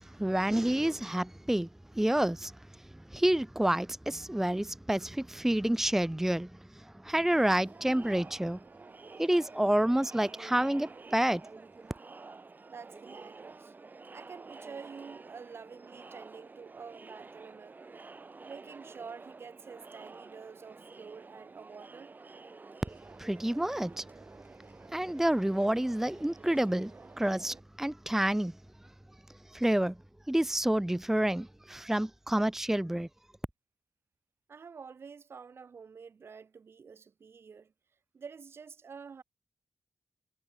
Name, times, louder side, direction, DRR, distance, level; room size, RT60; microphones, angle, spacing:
voice 1, 0.0-1.7 1.9-2.6 3.1-8.6 9.2-11.4 23.2-24.0 24.9-28.5 29.5-29.9 30.3-33.1, right 1 dB, 10° right, 0.8 m, -29 dB
Crowd, 7.6-27.6, right 3 dB, 40° right, 6.0 m, -50 dB
voice 2, 12.7-13.7 14.1-18.0 18.4-22.1 34.5-37.7 38.1-39.2, right 5 dB, 60° right, 3.4 m, -48 dB
cardioid pair, 55°, 5 cm